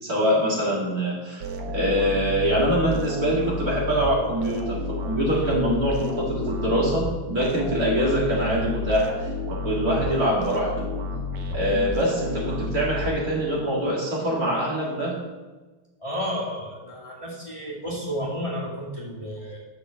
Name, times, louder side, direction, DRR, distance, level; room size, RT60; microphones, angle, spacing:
voice 1, 0.0-10.9 11.5-15.2, equal, 45° right, -4 dB, 3.2 m, -24 dB
sound 1, 1.4-13.6, left 2 dB, 85° right, 2.2 m, -31 dB
voice 2, 16.0-19.6, equal, 15° left, -5 dB, 2.1 m, -32 dB
10.0 x 6.6 x 7.1 m, 1.2 s
omnidirectional pair, 2.3 m